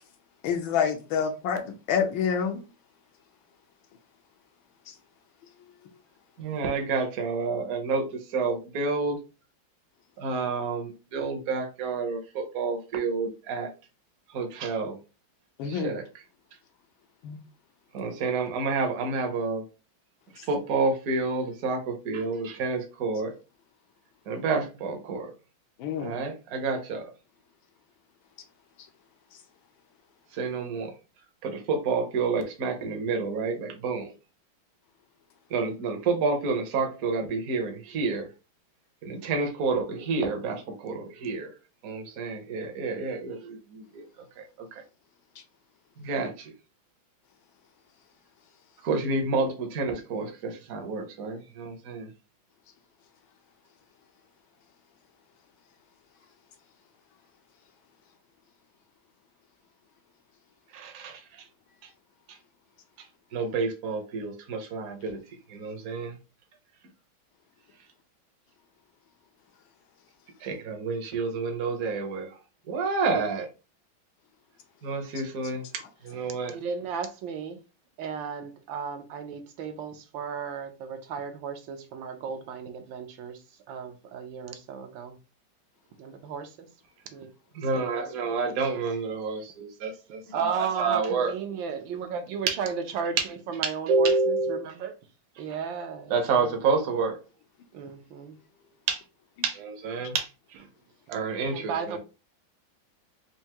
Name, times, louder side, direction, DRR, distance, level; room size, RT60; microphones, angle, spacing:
voice 1, 0.4-2.6 4.9-5.0 15.6-16.0 17.2-17.4 25.8-26.2, left 7 dB, 80° left, 1.4 m, -27 dB
voice 2, 6.4-9.2 10.2-13.7 14.3-15.0 15.7-16.0 17.9-19.6 20.5-23.3 24.3-25.3 26.0-27.0 30.3-30.9 31.4-34.1 35.5-38.3 39.0-41.5 41.8-44.0 44.4-44.5 44.7-44.8 46.0-46.5 48.8-52.1 60.7-61.2 63.3-65.2 65.5-66.2 70.4-72.3 72.7-73.5 74.8-75.6 76.0-76.5 87.5-91.3 92.5-92.6 93.6-94.6 96.1-97.2 98.9-99.0 99.4-100.3 101.1-102.0, right 4 dB, 55° right, 1.1 m, -29 dB
voice 3, 76.5-77.6 78.0-83.4 83.7-85.1 86.0-86.7 87.1-87.3 87.7-88.0 88.3-88.8 90.3-95.0 95.4-96.5 97.7-98.4 101.5-102.0, right 6 dB, 75° right, 1.4 m, -35 dB
4.6 x 2.6 x 2.9 m
omnidirectional pair, 2.2 m